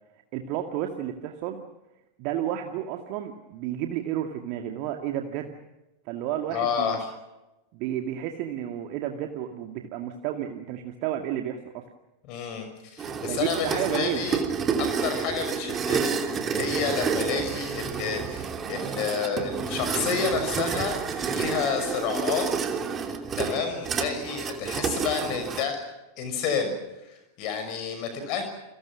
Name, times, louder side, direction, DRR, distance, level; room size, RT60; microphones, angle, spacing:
voice 1, 0.3-1.6 2.2-5.5 6.1-7.0 7.7-11.8 13.2-14.3, right 11 dB, 45° right, 4 dB, 2.2 m, -31 dB
voice 2, 6.5-7.0 12.3-14.4 14.8-16.2 16.5-22.8 23.3-25.8 26.2-26.7 27.0-28.4, left 6 dB, 40° left, 7 dB, 6.0 m, -30 dB
sound 1, 13.0-25.6, right 6 dB, 25° right, 2.9 m, -29 dB
30.0 x 24.0 x 6.2 m, 1.0 s
figure-of-eight pair, 90°, 0 cm